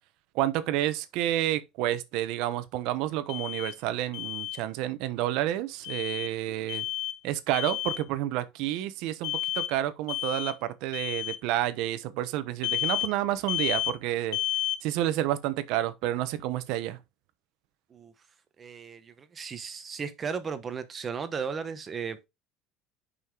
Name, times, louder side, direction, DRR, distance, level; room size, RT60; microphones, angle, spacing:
voice 1, 0.3-6.8 7.2-14.4 14.8-17.0, right 13 dB, 65° right, 0.9 m, -30 dB
Alarm, 3.3-3.7 4.1-4.6 5.8-6.3 6.7-7.2 7.5-8.0 9.2-9.7 10.1-10.6 10.9-11.4 12.6-13.1 13.5-14.0 14.3-14.8, left 14 dB, 80° left, 0.8 m, -31 dB
voice 2, 18.6-22.3, right 6 dB, 25° right, 1.0 m, -35 dB
5.6 x 5.5 x 4.8 m
cardioid pair, 160°, 0 cm